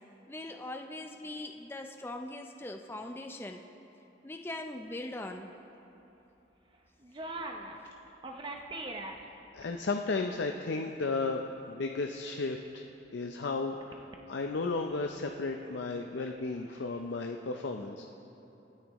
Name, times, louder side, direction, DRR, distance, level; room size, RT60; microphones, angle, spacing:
voice 1, 0.3-3.6 4.2-5.5, left 1 dB, 10° left, 4 dB, 0.4 m, -41 dB
sound 1, 6.7-6.8 7.0-7.8 8.2-9.6 9.9-10.0 10.3-10.4 13.8-14.2 14.7-17.0, right 2 dB, 25° right, 0.7 m, -42 dB
voice 2, 9.5-11.4 11.7-18.0, left 3 dB, 70° left, 4 dB, 0.5 m, -34 dB
24.5 x 9.9 x 3.0 m, 3.0 s
head